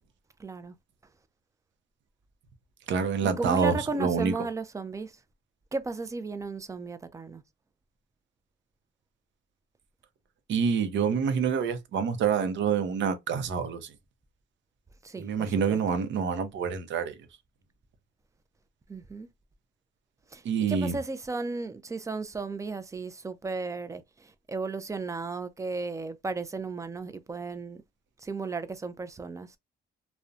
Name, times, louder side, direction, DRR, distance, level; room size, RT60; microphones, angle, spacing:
voice 1, 0.4-0.7 3.2-5.1 5.7-7.4 15.0-15.8 18.9-19.3 20.3-20.4 20.7-27.8 28.2-29.5, right 3 dB, 15° right, 0.3 m, -35 dB
voice 2, 2.9-4.3 10.5-13.9 15.2-17.1 20.4-21.0, right 6 dB, 70° right, 0.6 m, -27 dB
2.5 x 2.1 x 2.3 m
cardioid pair, 90°, 20 cm